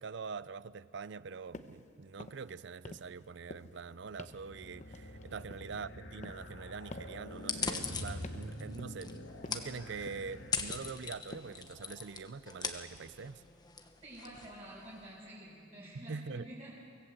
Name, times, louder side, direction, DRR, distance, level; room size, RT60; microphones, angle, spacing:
voice 1, 0.0-13.4 16.1-16.5, right 5 dB, 65° right, 17 dB, 0.5 m, -44 dB
sound 1, 1.5-1.8 2.1-2.5 2.8-3.2 3.5-3.8 4.2-4.5 4.8-5.8 6.2-6.5 6.9-7.2 7.6-7.8 8.2-8.5 8.8-9.1 9.4-9.7 10.1-10.4 10.7-11.0 11.3-11.6, left 2 dB, 40° left, 1.0 m, -49 dB
sound 2, 3.9-11.3, left 1 dB, 70° left, 1.8 m, -47 dB
voice 2, 5.3-5.7 14.0-16.7, right 1 dB, 35° right, -9 dB, 6.0 m, -50 dB
sound 3, 7.4-15.1, left 5 dB, 20° left, 1.2 m, -41 dB
24.5 x 18.0 x 7.8 m, 2.4 s
head